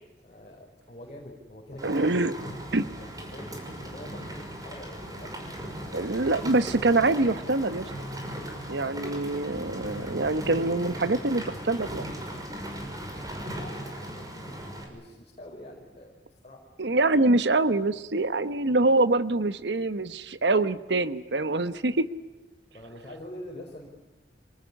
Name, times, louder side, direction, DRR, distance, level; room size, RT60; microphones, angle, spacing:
voice 1, 0.2-2.1 2.5-5.9 8.7-10.6 13.5-16.6 22.7-23.9, left 1 dB, 35° left, -1 dB, 5.0 m, -46 dB
Rain, 1.8-14.8, right 1 dB, 20° right, 5.7 m, -38 dB
voice 2, 1.8-2.3 2.7-2.9 5.9-7.9 8.7-12.1 16.8-22.1, right 2 dB, 70° right, 13 dB, 1.0 m, -25 dB
27.0 x 19.0 x 9.9 m, 1.2 s
head